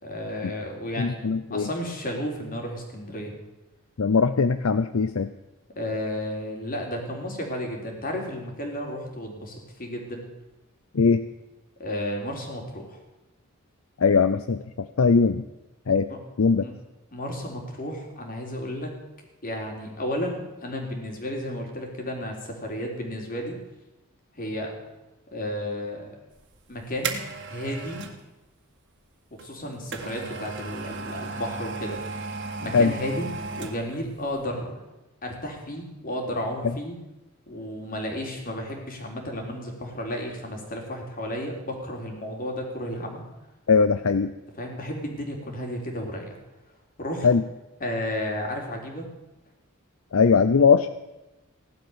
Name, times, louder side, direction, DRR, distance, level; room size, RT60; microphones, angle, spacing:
voice 1, 0.0-1.2 1.5-3.3 5.8-10.3 11.8-13.0 16.1-16.2 16.6-16.7 17.1-18.9 19.4-23.6 24.4-24.7 25.3-26.1 26.7-27.2 27.5-28.1 29.4-32.0 32.6-33.3 33.6-34.8 35.2-36.9 37.5-43.2 44.6-46.4 47.0-47.3 47.8-49.1, left 1 dB, 40° left, 1 dB, 3.9 m, -32 dB
voice 2, 1.0-1.7 4.0-5.3 10.9-11.2 14.0-15.4 15.9-16.1 16.4-16.6 32.7-32.9 36.6-36.7 43.7-44.3 47.2-47.4 50.1-50.9, left 5 dB, 70° left, 12 dB, 0.6 m, -20 dB
sound 1, 26.4-28.2 29.4-34.0 34.4-34.5, right 4 dB, 55° right, 1.9 m, -35 dB
17.0 x 12.0 x 7.0 m, 1.0 s
head